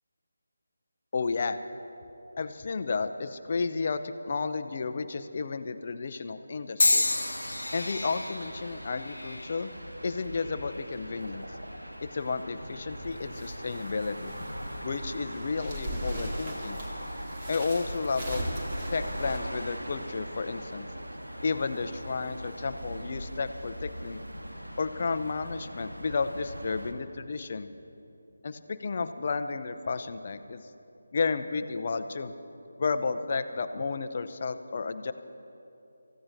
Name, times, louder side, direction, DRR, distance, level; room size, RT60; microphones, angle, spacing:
voice 1, 1.1-1.6 2.4-7.1 7.7-9.7 10.0-11.5 12.0-14.5 14.8-16.8 17.5-18.5 18.9-20.9 21.4-24.2 24.8-27.7 28.4-30.6 31.1-32.3 32.8-35.1, left 4 dB, 40° left, 10 dB, 0.6 m, -32 dB
sound 1, 6.8-10.9 11.6-12.1 13.0-13.2, left 2 dB, 70° left, 1.2 m, -31 dB
sound 2, 7.0-26.9, equal, 85° right, 1.6 m, -41 dB
sound 3, 12.6-19.4, equal, 30° right, 2.6 m, -39 dB
28.5 x 15.0 x 2.7 m, 2.8 s
figure-of-eight pair, 155°, 0 cm